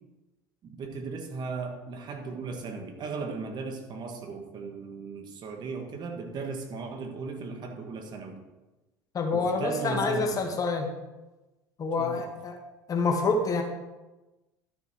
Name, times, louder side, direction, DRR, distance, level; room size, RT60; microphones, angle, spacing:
voice 1, 0.6-8.4 9.3-10.5 12.0-12.3, right 4 dB, 45° right, 4 dB, 2.0 m, -36 dB
voice 2, 9.1-10.9 11.8-12.6 12.9-13.6, left 4 dB, 35° left, 3 dB, 1.8 m, -27 dB
12.0 x 6.6 x 4.6 m, 1.1 s
hypercardioid pair, 70°, 10 cm